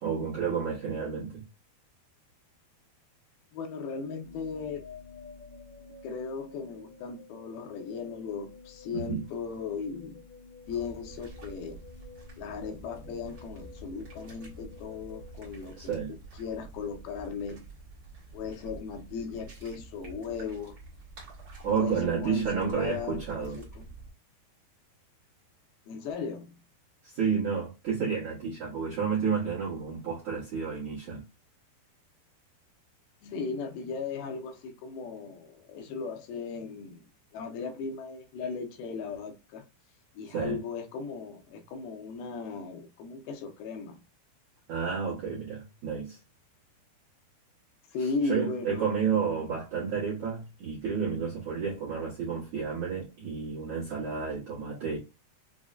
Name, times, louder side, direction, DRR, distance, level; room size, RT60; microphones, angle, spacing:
voice 1, 0.0-1.4 8.9-9.2 15.8-16.1 21.6-23.6 27.0-31.2 40.3-40.6 44.7-46.2 48.2-55.0, right 6 dB, 75° right, 1.5 m, -31 dB
voice 2, 3.5-4.8 6.0-10.2 10.7-11.8 12.4-17.7 18.3-20.8 21.8-23.9 25.9-26.6 33.2-39.6 40.2-44.0 47.9-48.9, left 5 dB, 80° left, 2.4 m, -37 dB
sound 1, 4.2-16.3, left 4 dB, 60° left, 1.9 m, -51 dB
sound 2, 10.6-24.1, right 3 dB, 60° right, 1.1 m, -48 dB
6.1 x 2.1 x 2.4 m
omnidirectional pair, 4.6 m